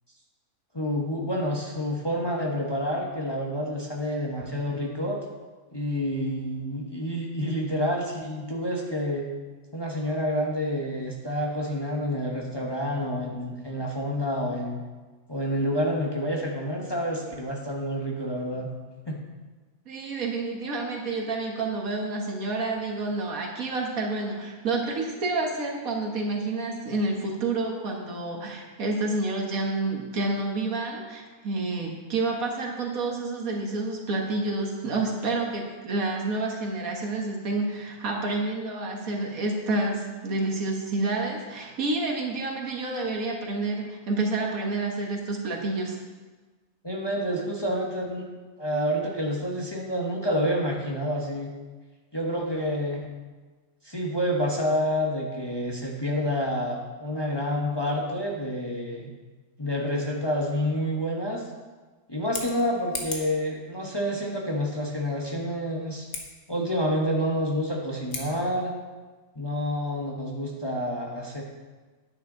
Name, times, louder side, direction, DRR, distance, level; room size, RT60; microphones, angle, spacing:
voice 1, 0.7-5.2 5.7-9.3 9.7-14.8 15.3-18.7 19.1-19.2 46.8-48.3 48.6-51.5 52.1-53.1 53.8-59.1 59.6-61.5 62.1-66.1 66.5-68.7 69.3-71.4, equal, 20° left, -1 dB, 1.0 m, -28 dB
voice 2, 19.9-46.0, right 2 dB, 75° right, 0 dB, 1.9 m, -29 dB
Scissors, 62.1-63.4 66.0-66.3 68.0-68.3, left 4 dB, 85° left, 1.7 m, -36 dB
9.7 x 9.3 x 3.8 m, 1.3 s
omnidirectional pair, 1.5 m